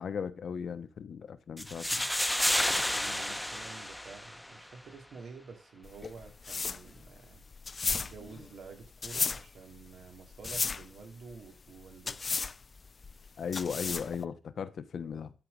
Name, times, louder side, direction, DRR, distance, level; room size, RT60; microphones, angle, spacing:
voice 1, 0.0-2.1 13.4-15.3, left 7 dB, 75° left, 1.0 m, -37 dB
sound 1, 1.6-4.6, left 1 dB, 5° left, 0.9 m, -31 dB
voice 2, 2.9-7.4 7.9-12.4, right 5 dB, 80° right, 2.4 m, -49 dB
sound 2, 5.8-14.2, left 4 dB, 45° left, 0.3 m, -35 dB
12.0 x 4.5 x 5.2 m
cardioid pair, 75°, 0 cm